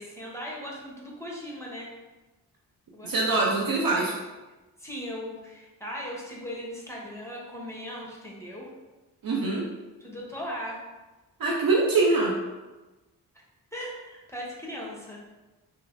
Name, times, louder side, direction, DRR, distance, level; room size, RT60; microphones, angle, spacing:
voice 1, 0.0-1.9 2.9-4.1 4.8-8.7 10.0-10.8 13.7-15.2, equal, 5° left, -4 dB, 0.9 m, -38 dB
voice 2, 3.0-4.1 9.2-9.7 11.4-12.3, right 3 dB, 60° right, -2 dB, 0.6 m, -23 dB
4.7 x 2.1 x 2.5 m, 1.1 s
cardioid pair, 50°, 40 cm